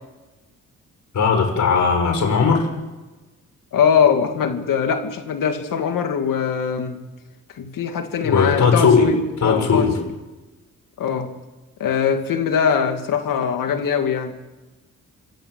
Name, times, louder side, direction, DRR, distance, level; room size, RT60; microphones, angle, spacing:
voice 1, 1.1-2.7 8.2-9.1 9.4-9.9, left 5 dB, 65° left, 4 dB, 6.2 m, -17 dB
voice 2, 3.7-7.0 7.6-9.9 11.0-11.3 11.8-14.4, left 7 dB, 90° left, 5 dB, 2.6 m, -21 dB
27.0 x 13.0 x 8.4 m, 1.2 s
cardioid pair, 115°, 32 cm